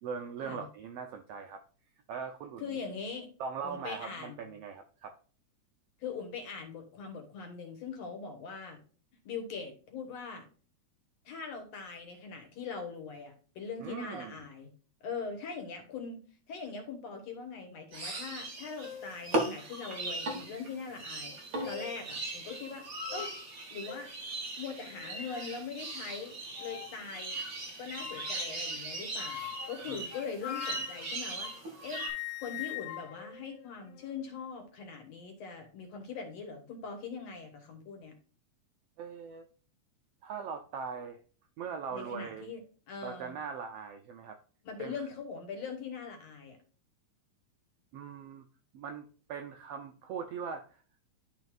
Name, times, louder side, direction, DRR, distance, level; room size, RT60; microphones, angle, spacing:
voice 1, 0.0-1.6 2.1-2.7 3.4-5.1 13.8-14.4 29.9-30.0 39.0-39.5 40.2-41.2 41.6-42.5 43.0-44.4 44.8-44.9 47.9-48.4 48.7-50.8, right 6 dB, 80° right, 5 dB, 1.4 m, -40 dB
voice 2, 2.6-3.3 3.6-4.5 6.0-8.8 9.2-10.4 11.3-14.7 15.0-16.2 16.5-21.3 21.7-22.9 23.1-23.3 23.7-24.1 24.6-27.4 27.8-31.5 31.8-32.1 32.4-38.1 41.9-42.6 42.9-43.4 44.6-46.6, left 5 dB, 65° left, 4 dB, 2.5 m, -41 dB
sound 1, 17.9-32.1, right 2 dB, 40° right, 1.4 m, -39 dB
sound 2, 18.4-18.5 18.8-19.2 19.9-20.0 21.3-22.1 22.5-22.6 23.1-23.3 23.9-24.2 24.8-25.6 26.6-27.0 27.9-28.5 29.2-31.6 31.9-34.2, left 13 dB, 80° left, 1.9 m, -43 dB
12.0 x 4.1 x 2.4 m, 0.41 s
omnidirectional pair, 3.4 m